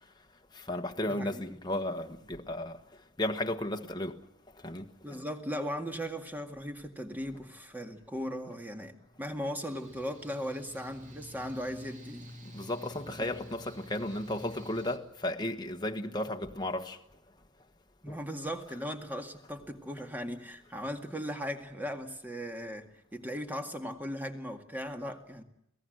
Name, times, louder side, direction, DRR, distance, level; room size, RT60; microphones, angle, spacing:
voice 1, 0.5-2.8 3.2-4.2 4.6-5.2 12.5-17.0 18.1-18.2, left 1 dB, 20° left, 1.3 m, -34 dB
voice 2, 1.1-1.5 5.0-12.4 13.1-13.2 18.0-25.4, equal, 10° right, 2.0 m, -38 dB
Mechanical fan, 9.6-15.0, equal, 35° right, 2.6 m, -49 dB
26.0 x 17.5 x 7.9 m
head